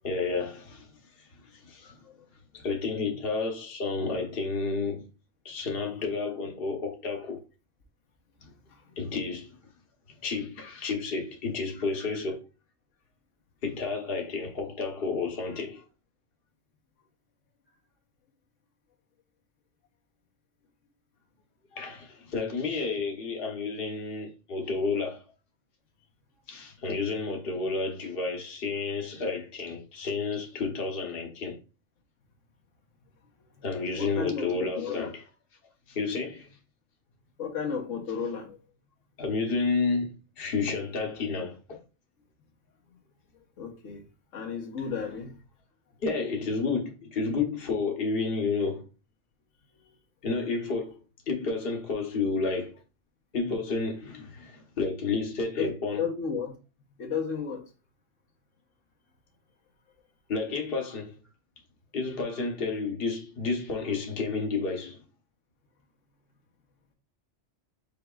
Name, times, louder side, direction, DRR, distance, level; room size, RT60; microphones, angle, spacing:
voice 1, 0.0-0.9 1.5-2.0 2.5-5.1 5.4-7.4 8.4-8.5 9.0-9.5 10.2-12.4 13.6-15.8 21.7-25.2 26.5-31.6 33.6-35.1 35.9-36.5 39.2-41.6 46.0-48.9 50.2-51.0 51.3-52.7 53.3-56.0 60.3-61.2 61.9-65.0, left 4 dB, 50° left, 1.1 m, -31 dB
voice 2, 33.9-35.1 37.4-38.6 42.9-43.0 43.6-44.0 44.3-45.4 49.7-49.9 55.6-55.7 56.0-56.6 57.0-57.7, left 6 dB, 85° left, 1.4 m, -33 dB
5.4 x 3.9 x 2.3 m
omnidirectional pair, 1.3 m